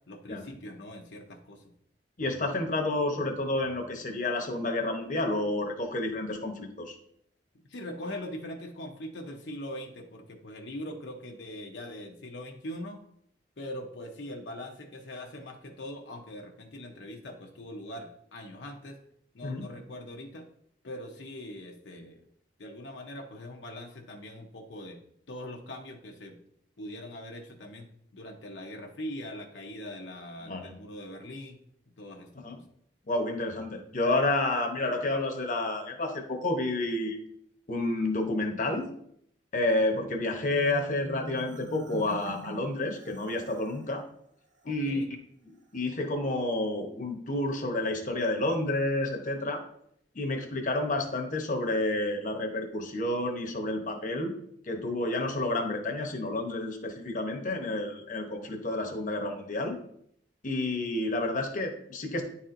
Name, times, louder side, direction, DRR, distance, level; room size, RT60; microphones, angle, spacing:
voice 1, 0.1-1.6 7.7-13.0 13.6-19.0 19.3-20.5 20.8-22.2 22.6-25.0 25.3-26.4 26.8-27.9 28.1-31.6 32.0-32.6 34.8-35.0 44.6-45.1, left 1 dB, 75° left, 1 dB, 0.8 m, -42 dB
voice 2, 2.2-7.0 19.4-19.6 30.5-30.7 32.4-32.6 33.1-37.2 37.7-38.9 39.5-44.0 44.7-45.2 45.4-49.6 50.1-54.3 54.7-59.8 60.4-62.2, left 2 dB, 45° left, 3 dB, 0.9 m, -30 dB
Marimba xylophone, 40.5-43.9, right 1 dB, 90° right, 1.1 m, -44 dB
9.8 x 4.2 x 2.6 m, 0.69 s
head